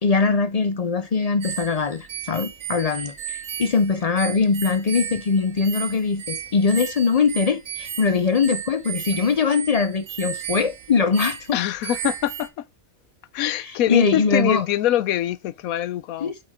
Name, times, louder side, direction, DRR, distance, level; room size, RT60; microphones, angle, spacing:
voice 1, 0.0-11.4 13.6-14.6 16.2-16.4, left 5 dB, 60° left, 0.4 m, -22 dB
sound 1, 1.4-12.5, right 9 dB, 55° right, 1.2 m, -34 dB
voice 2, 11.5-12.6 13.3-16.3, left 12 dB, 85° left, 1.1 m, -24 dB
7.9 x 5.6 x 3.6 m
omnidirectional pair, 1.4 m